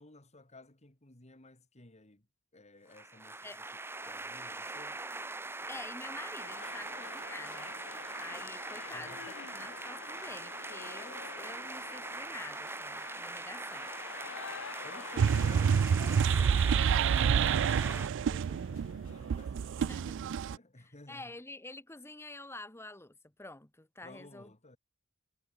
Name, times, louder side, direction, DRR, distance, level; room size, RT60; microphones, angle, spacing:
voice 1, 0.0-2.3 2.5-3.7 4.1-5.0 8.9-9.3 14.8-20.2 20.4-21.3 24.0-24.8, left 2 dB, 30° left, 2.7 m, -55 dB
sound 1, 2.9-18.1, right 2 dB, 10° right, 0.8 m, -42 dB
voice 2, 5.7-7.8 8.2-13.9 19.8-20.3 20.8-24.5, left 2 dB, 10° left, 1.4 m, -48 dB
sound 2, 6.4-19.7, left 7 dB, 65° left, 0.7 m, -50 dB
sound 3, 15.2-20.6, right 7 dB, 60° right, 0.3 m, -28 dB
head